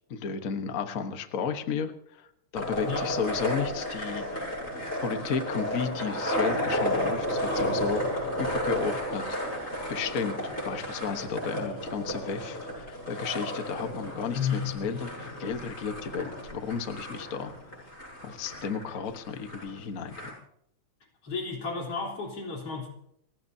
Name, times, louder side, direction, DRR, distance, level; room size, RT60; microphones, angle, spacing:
voice 1, 0.1-2.3 2.5-4.6 5.0-8.0 8.4-9.6 9.9-10.4 10.6-17.5 18.2-20.3, left 6 dB, 85° left, 7 dB, 0.7 m, -33 dB
sound 1, 2.5-20.3, equal, 20° left, 7.0 m, -33 dB
voice 2, 14.3-15.0 21.2-22.9, left 5 dB, 50° left, 0 dB, 4.6 m, -32 dB
30.0 x 15.5 x 2.8 m, 0.75 s
omnidirectional pair, 3.5 m